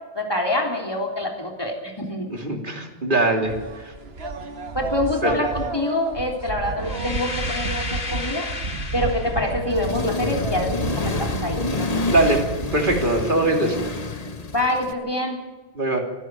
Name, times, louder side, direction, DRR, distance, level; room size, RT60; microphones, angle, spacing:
voice 1, 0.1-2.4 4.7-8.4 8.9-12.1 14.5-15.4, left 1 dB, 25° left, 1 dB, 3.7 m, -26 dB
voice 2, 2.3-3.9 5.2-5.3 12.1-12.4 12.7-13.8 15.7-16.0, right 2 dB, 55° right, 2 dB, 3.3 m, -21 dB
sound 1, 3.5-13.2, right 3 dB, 75° right, 1.7 m, -31 dB
sound 2, 6.8-9.6, left 3 dB, 55° left, 2.2 m, -32 dB
Accelerating revving vroom, 9.7-14.9, left 3 dB, 40° left, 1.2 m, -28 dB
26.0 x 11.5 x 9.3 m, 1.2 s
omnidirectional pair, 1.1 m